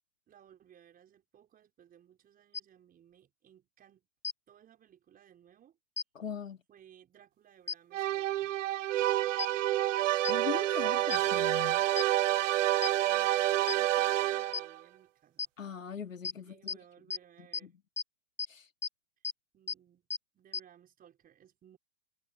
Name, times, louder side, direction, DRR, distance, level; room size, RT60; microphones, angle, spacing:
voice 1, 0.3-4.1 4.5-5.8 6.7-8.5 13.1-15.5 16.4-17.7 19.5-20.1 20.3-21.8, right 10 dB, 20° right, 5.8 m, -60 dB
sound 1, 2.5-2.6 4.2-4.3 6.0-6.1 7.7-7.8 9.4-9.5 10.2-10.3 11.1-11.2 12.0-12.1 12.8-12.9 13.7-13.8 14.5-14.6 15.4-15.5 16.2-16.3 16.7-16.8 17.1-17.2 17.5-17.6 18.0-18.1 18.4-18.5 18.8-18.9 19.2-19.3 19.7-19.8 20.1-20.2 20.5-20.6, left 5 dB, 5° left, 0.8 m, -33 dB
voice 2, 6.1-6.6 10.3-11.9 15.6-16.8 17.4-17.7 18.5-18.7, left 7 dB, 90° left, 2.5 m, -41 dB
sound 2, 7.9-14.8, right 14 dB, 75° right, 0.5 m, -28 dB
hypercardioid pair, 120°, 38 cm